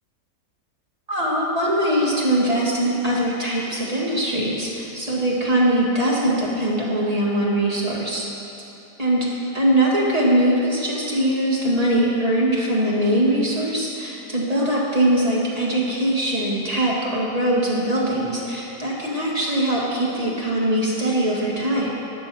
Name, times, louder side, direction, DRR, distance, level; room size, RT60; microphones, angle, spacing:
voice 1, 1.1-8.2 9.0-9.3 9.5-21.9, right 1 dB, 25° right, -5 dB, 1.7 m, -21 dB
12.0 x 6.8 x 6.2 m, 3.0 s
omnidirectional pair, 1.8 m